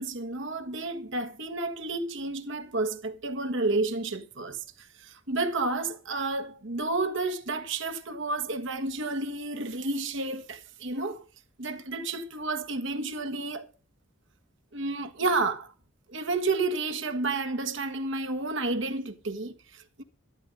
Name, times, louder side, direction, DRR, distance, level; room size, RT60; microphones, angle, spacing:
voice 1, 0.0-11.2 11.6-13.7 14.7-15.7 16.1-20.0, right 3 dB, 65° right, 1.5 m, -31 dB
12.5 x 12.5 x 5.3 m
head